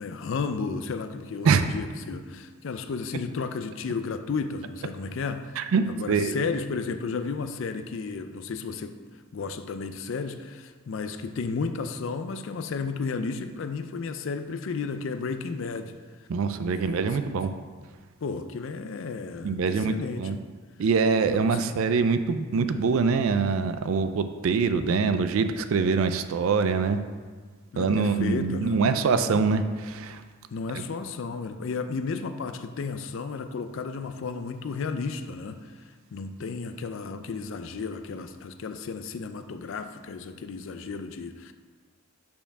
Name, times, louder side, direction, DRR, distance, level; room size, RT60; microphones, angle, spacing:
voice 1, 0.0-9.0 9.3-15.9 16.7-17.4 18.2-20.4 21.3-21.7 27.7-28.8 29.3-29.4 30.5-41.5, left 4 dB, 55° left, 9 dB, 0.4 m, -33 dB
voice 2, 5.6-6.5 16.3-17.5 19.4-20.4 20.8-27.0 27.8-30.2 30.7-30.8, right 5 dB, 65° right, 9 dB, 0.3 m, -24 dB
5.7 x 4.4 x 5.9 m, 1.5 s
head